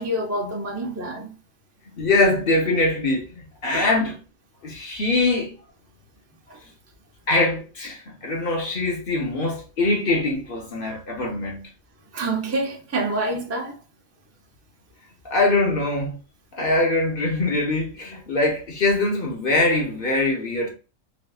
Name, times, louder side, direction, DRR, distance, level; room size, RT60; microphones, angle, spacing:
voice 1, 0.0-1.4 3.7-3.9 6.5-6.6 12.1-13.8, right 1 dB, 20° right, 0.5 m, -27 dB
voice 2, 1.9-4.2 4.6-5.5 7.3-11.6 15.2-16.1 16.5-20.7, left 2 dB, 45° left, 1.0 m, -23 dB
3.9 x 2.6 x 2.3 m
omnidirectional pair, 1.4 m